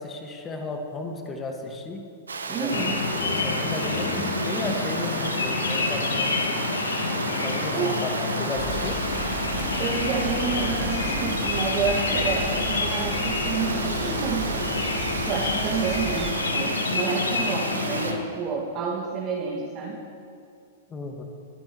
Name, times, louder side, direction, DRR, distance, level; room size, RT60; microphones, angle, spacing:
voice 1, 0.0-2.0 2.5-6.6 7.4-9.0 20.9-21.2, left 2 dB, 20° left, 3 dB, 1.9 m, -34 dB
Water, 2.3-18.1, right 4 dB, 80° right, 1.1 m, -33 dB
voice 2, 2.5-3.0 7.7-8.0 9.8-14.8 15.2-20.1, right 5 dB, 35° right, -5 dB, 2.3 m, -29 dB
sound 1, 2.7-18.2, left 3 dB, 75° left, 1.4 m, -28 dB
sound 2, 8.6-16.3, right 4 dB, 15° right, 1.2 m, -36 dB
23.5 x 10.5 x 3.2 m, 2.5 s
figure-of-eight pair, 105°, 0 cm